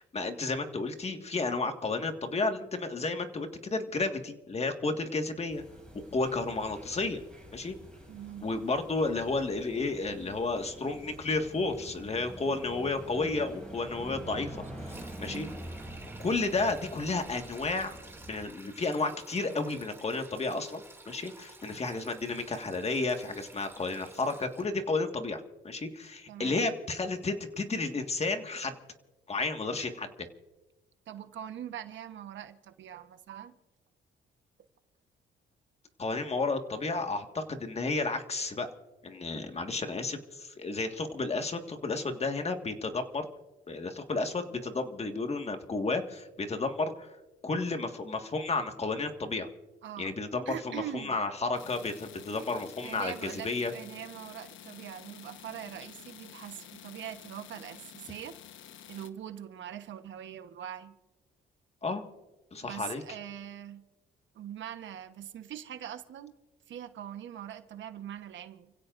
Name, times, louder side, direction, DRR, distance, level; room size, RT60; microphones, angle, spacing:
voice 1, 0.0-5.6 5.9-7.2 7.5-7.8 8.4-14.6 14.8-14.9 15.2-15.5 16.2-18.0 18.3-28.7 29.3-30.3 36.0-38.7 39.0-43.3 43.7-47.1 47.4-49.5 50.0-53.7 61.8-62.0 62.5-63.0, left 3 dB, 30° left, 1.8 m, -32 dB
sound 1, 5.5-18.5, right 1 dB, 5° left, 7.6 m, -46 dB
voice 2, 8.1-8.5 15.2-15.5 26.3-26.7 31.1-33.6 49.8-50.1 50.5-51.2 52.8-58.4 58.9-60.9 62.6-63.8 64.3-66.3 66.7-68.7, right 10 dB, 70° right, 1.2 m, -42 dB
Sink (filling or washing), 14.6-24.7, right 2 dB, 10° right, 2.6 m, -52 dB
sound 2, 51.6-59.1, left 10 dB, 75° left, 1.2 m, -50 dB
30.0 x 16.0 x 2.6 m
cardioid pair, 90°, 20 cm